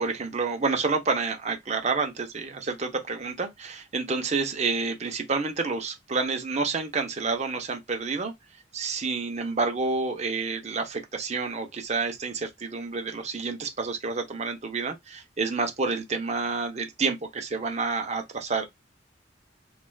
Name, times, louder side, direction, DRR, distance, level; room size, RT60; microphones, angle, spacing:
voice 1, 0.0-8.3 8.7-18.7, right 4 dB, 40° right, 0.7 m, -29 dB
3.2 x 2.4 x 2.2 m
head